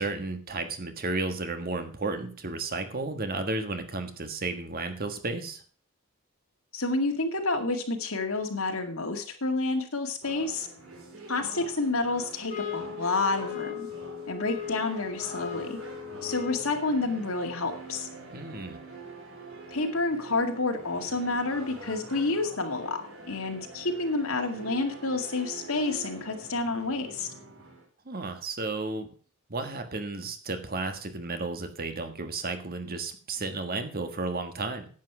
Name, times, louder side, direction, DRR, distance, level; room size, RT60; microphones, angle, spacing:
voice 1, 0.0-5.6 18.3-18.8 28.0-29.1 29.5-34.9, right 3 dB, 45° right, 7 dB, 1.5 m, -33 dB
voice 2, 6.7-10.7 11.3-13.9 14.3-15.8 16.2-18.1 19.7-27.3, left 3 dB, 75° left, 4 dB, 2.2 m, -29 dB
sound 1, 10.2-27.9, right 3 dB, 70° right, 3.9 m, -45 dB
sound 2, 12.5-16.8, left 10 dB, 35° left, 1.4 m, -38 dB
10.5 x 8.5 x 6.1 m, 0.43 s
head